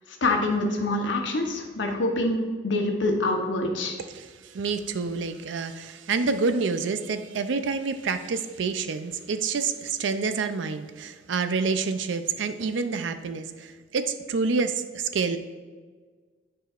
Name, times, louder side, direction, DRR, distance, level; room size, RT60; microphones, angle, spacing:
voice 1, 0.2-3.9, left 2 dB, 75° left, 2 dB, 1.0 m, -25 dB
voice 2, 4.1-15.4, right 4 dB, 80° right, 10 dB, 0.4 m, -28 dB
9.1 x 4.8 x 2.4 m, 1.5 s
head